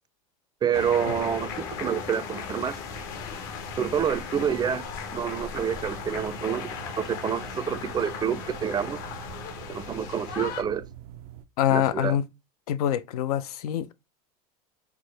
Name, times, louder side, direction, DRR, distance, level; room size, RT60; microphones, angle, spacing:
voice 1, 0.6-2.8 3.8-4.9 5.1-9.0 9.7-10.8 11.7-12.2, right 8 dB, 20° right, 0.4 m, -28 dB
sound 1, 0.7-10.6, left 5 dB, 65° left, 0.9 m, -37 dB
sound 2, 5.8-11.4, right 12 dB, 85° right, 0.5 m, -46 dB
voice 2, 11.6-12.2 12.7-13.9, left 11 dB, 85° left, 0.5 m, -25 dB
4.6 x 2.0 x 3.1 m
supercardioid pair, 110°, 19 cm